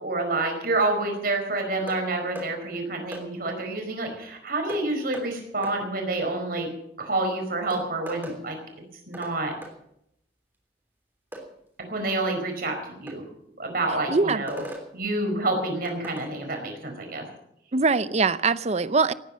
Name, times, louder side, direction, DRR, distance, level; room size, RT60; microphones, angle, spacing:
voice 1, 0.0-6.7 7.0-8.6 9.1-9.5 11.9-13.2 13.6-14.6 14.9-17.2, right 2 dB, 55° right, 4.8 m, -28 dB
sound 1, 1.9-2.0 2.4-2.5 3.1-3.3 4.7-4.8 5.1-5.3 5.6-5.8 7.1-7.2 7.7-8.4 9.1-9.4 9.6-9.7 11.3-11.5 13.1-13.2 14.5-14.9 15.8-16.3, right 1 dB, 10° right, 3.3 m, -39 dB
voice 2, 14.1-14.4 17.7-19.1, right 4 dB, 40° right, 0.6 m, -22 dB
18.0 x 10.0 x 7.4 m
head